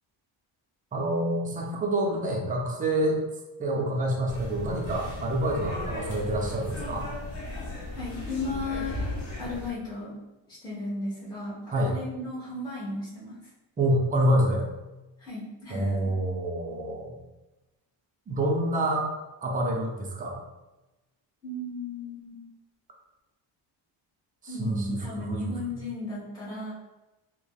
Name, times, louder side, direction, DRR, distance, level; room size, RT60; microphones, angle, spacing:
voice 1, 0.9-3.2 3.6-7.1 11.7-11.9 13.8-14.6 15.7-17.2 18.3-19.1 19.4-20.4 24.4-25.6, right 1 dB, 20° right, 0 dB, 0.3 m, -27 dB
sound 1, 4.3-9.7, left 2 dB, 70° left, 1.0 m, -36 dB
voice 2, 7.9-9.0 9.4-10.1 10.5-13.4 15.2-16.1 21.4-22.5 24.5-26.7, left 2 dB, 10° left, -9 dB, 0.9 m, -35 dB
3.2 x 2.1 x 2.2 m, 1.1 s
cardioid pair, 135°, 47 cm